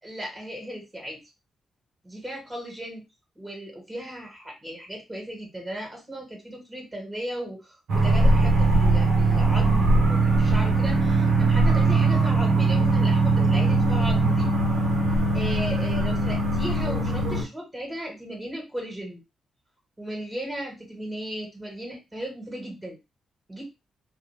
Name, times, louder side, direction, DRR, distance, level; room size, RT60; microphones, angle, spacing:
voice 1, 0.0-1.2 2.0-3.0 3.4-14.5 15.3-19.2 20.0-23.0 23.5-23.7, right 1 dB, 25° right, 1 dB, 1.3 m, -36 dB
sound 1, 7.9-17.4, right 2 dB, 75° right, 0.8 m, -21 dB
2.2 x 2.0 x 3.3 m, 0.24 s
hypercardioid pair, 45°, 0 cm